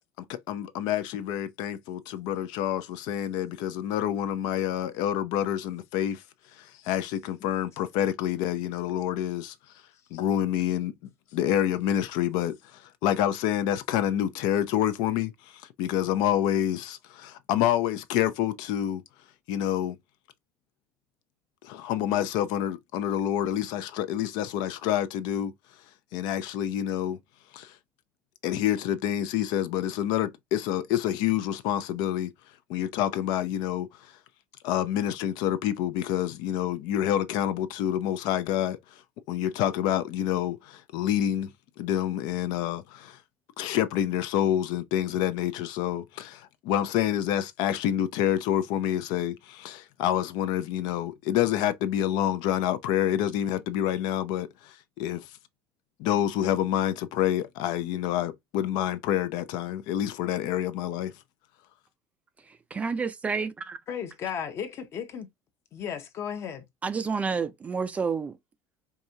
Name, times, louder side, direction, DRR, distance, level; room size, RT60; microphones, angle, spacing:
voice 1, 0.2-6.2 6.5-9.5 10.1-10.9 11.3-19.0 19.5-20.0 21.6-25.5 26.1-27.2 27.5-27.8 28.4-32.3 32.7-34.2 34.6-39.0 39.3-41.5 41.8-43.2 43.6-55.4 56.0-61.1, left 11 dB, 65° left, 0.5 m, -28 dB
voice 2, 62.5-63.8 66.8-68.4, right 5 dB, 15° right, 0.4 m, -30 dB
voice 3, 63.9-65.3 65.7-66.6, left 8 dB, 35° left, 0.8 m, -34 dB
4.7 x 2.7 x 2.7 m
cardioid pair, 165°, 8 cm